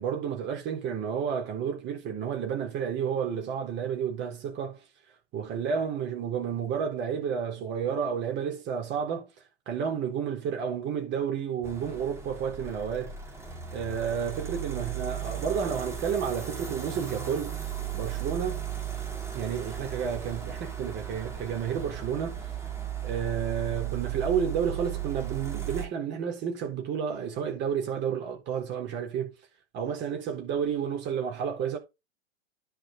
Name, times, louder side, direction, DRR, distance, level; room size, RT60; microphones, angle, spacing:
voice 1, 0.0-4.8 5.3-9.3 9.7-13.2 13.7-17.6 17.9-18.6 19.3-22.4 23.0-29.3 29.7-31.8, right 7 dB, 30° right, 3.9 m, -31 dB
sound 1, 11.6-25.8, right 9 dB, 10° right, 2.4 m, -36 dB
10.5 x 5.9 x 4.1 m
figure-of-eight pair, 105°, 35 cm